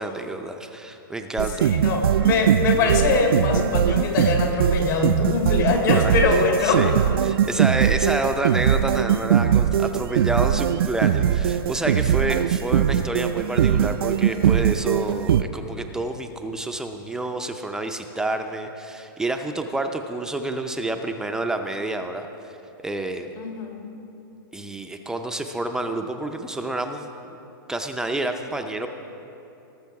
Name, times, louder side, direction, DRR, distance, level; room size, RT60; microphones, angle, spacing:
voice 1, 0.0-1.7 5.9-6.2 6.6-6.9 7.2-22.3 22.8-23.3 24.5-27.1 27.7-28.9, right 2 dB, 5° right, 5 dB, 0.4 m, -28 dB
sound 1, 1.4-15.4, right 9 dB, 75° right, 0.4 m, -21 dB
voice 2, 1.6-6.9 23.4-23.8, left 4 dB, 60° left, 2 dB, 2.1 m, -23 dB
18.5 x 6.7 x 4.7 m, 3.0 s
hypercardioid pair, 140°, 12 cm